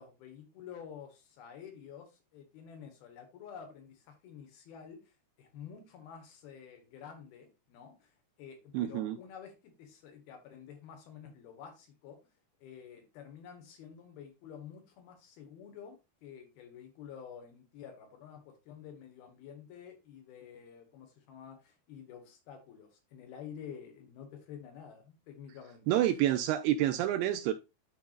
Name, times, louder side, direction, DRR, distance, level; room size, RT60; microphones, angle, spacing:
voice 1, 0.0-5.0 5.4-8.1 8.4-12.2 12.6-16.0 16.2-25.9, left 8 dB, 70° left, 2.9 m, -50 dB
voice 2, 8.7-9.2 25.9-27.5, right 12 dB, 85° right, 2.3 m, -28 dB
11.5 x 4.7 x 2.4 m
omnidirectional pair, 4.9 m